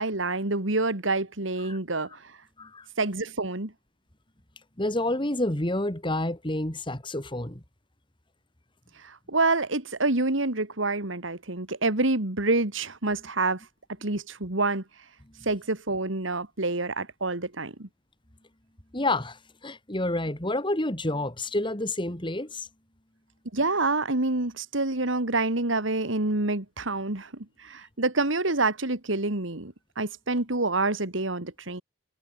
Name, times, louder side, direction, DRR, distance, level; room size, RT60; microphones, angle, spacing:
voice 1, 0.0-2.1 3.0-3.7 9.0-13.6 14.0-14.8 15.5-17.9 23.5-27.3 27.6-31.8, right 2 dB, 75° right, 2.5 m, -27 dB
voice 2, 4.8-7.6 15.4-15.5 18.9-22.7, left 1 dB, 25° left, 2.8 m, -29 dB
head